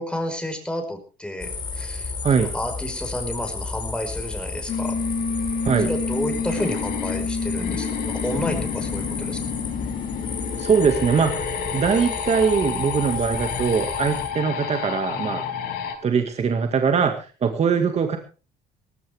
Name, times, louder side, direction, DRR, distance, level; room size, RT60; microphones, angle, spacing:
voice 1, 0.0-2.1 2.4-5.0 5.8-9.4, left 1 dB, 5° left, 5 dB, 5.1 m, -31 dB
sound 1, 1.4-14.3, left 4 dB, 30° left, 4.2 m, -33 dB
sound 2, 4.7-15.9, left 6 dB, 75° left, 5.4 m, -29 dB
voice 2, 10.6-15.4 16.0-18.2, right 6 dB, 40° right, 5 dB, 2.0 m, -22 dB
18.5 x 15.5 x 3.6 m, 0.34 s
cardioid pair, 110°, 17 cm